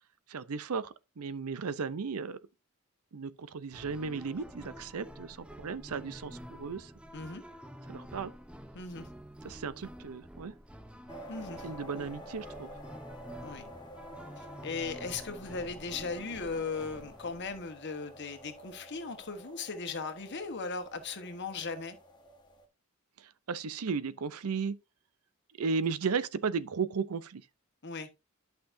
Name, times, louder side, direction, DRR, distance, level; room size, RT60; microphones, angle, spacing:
voice 1, 0.3-2.4 3.1-6.9 7.9-8.3 9.4-10.5 11.6-12.7 23.5-24.8 25.6-27.4, right 5 dB, 80° right, 0.6 m, -35 dB
sound 1, 3.7-17.6, equal, 5° right, 0.5 m, -49 dB
voice 2, 8.7-9.1 11.3-11.7 13.4-13.7 14.4-22.0 27.8-28.1, left 4 dB, 55° left, 1.2 m, -38 dB
sound 2, 11.1-22.7, equal, 20° left, 1.3 m, -50 dB
11.5 x 5.8 x 2.6 m
head